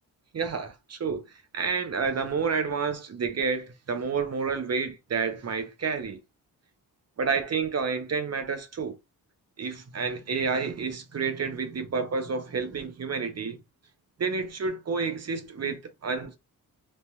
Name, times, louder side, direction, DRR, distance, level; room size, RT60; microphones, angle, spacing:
voice 1, 0.3-1.2 1.5-6.2 7.2-9.0 9.6-13.6 14.2-16.4, right 5 dB, 45° right, 0.8 m, -29 dB
3.2 x 2.8 x 2.3 m
cardioid pair, 75°, 38 cm